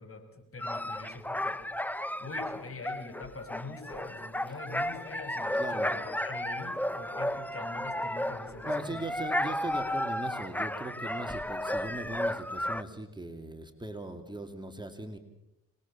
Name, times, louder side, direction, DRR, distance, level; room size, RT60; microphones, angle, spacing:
voice 1, 0.0-1.6 2.2-9.1, left 3 dB, 45° left, 6 dB, 6.4 m, -44 dB
sound 1, 0.6-12.8, left 1 dB, 5° left, 1.1 m, -33 dB
voice 2, 5.5-5.9 8.7-15.2, right 2 dB, 15° right, 5 dB, 2.6 m, -39 dB
26.5 x 21.0 x 7.4 m, 0.86 s
cardioid pair, 80°, 31 cm